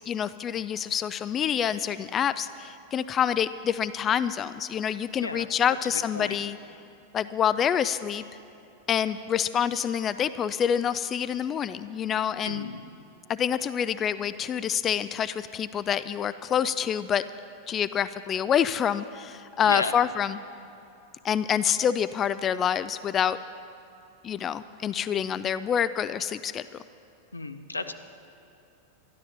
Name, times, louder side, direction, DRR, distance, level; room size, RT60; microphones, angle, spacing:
voice 1, 0.1-6.6 7.1-8.2 8.9-12.7 13.3-17.2 17.7-20.4 21.2-23.4 24.2-26.6, left 8 dB, 25° left, 14 dB, 0.3 m, -27 dB
voice 2, 12.4-12.8 19.6-19.9 27.3-27.9, left 3 dB, 80° left, 9 dB, 0.7 m, -33 dB
13.0 x 11.0 x 6.9 m, 2.8 s
figure-of-eight pair, 90°, 0 cm